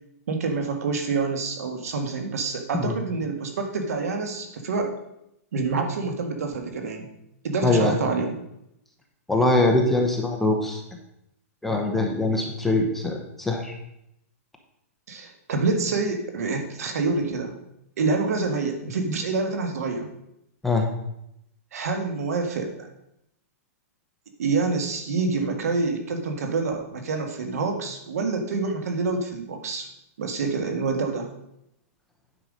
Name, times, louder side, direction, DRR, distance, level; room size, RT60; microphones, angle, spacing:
voice 1, 0.3-4.9 5.5-7.1 7.4-8.4 15.1-17.6 18.0-20.1 21.7-22.9 24.4-29.9 30.2-31.3, right 4 dB, 70° right, 5 dB, 1.8 m, -27 dB
voice 2, 7.6-7.9 9.3-10.8 11.6-13.8 20.6-20.9, left 2 dB, 5° left, 1 dB, 0.8 m, -22 dB
9.3 x 5.7 x 5.2 m, 0.81 s
hypercardioid pair, 165°, 8 cm